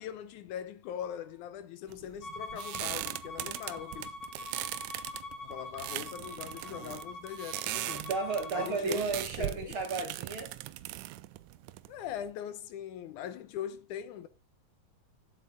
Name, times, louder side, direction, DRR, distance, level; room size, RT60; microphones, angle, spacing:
voice 1, 0.0-4.2 5.4-8.0 8.5-9.7 11.9-14.3, left 10 dB, 80° left, 2.2 m, -41 dB
sound 1, 1.9-12.3, right 16 dB, 80° right, 2.0 m, -39 dB
Bowed string instrument, 2.2-8.7, left 2 dB, 40° left, 1.9 m, -44 dB
voice 2, 7.9-10.5, right 4 dB, 50° right, 2.0 m, -33 dB
8.5 x 8.0 x 3.9 m
omnidirectional pair, 3.6 m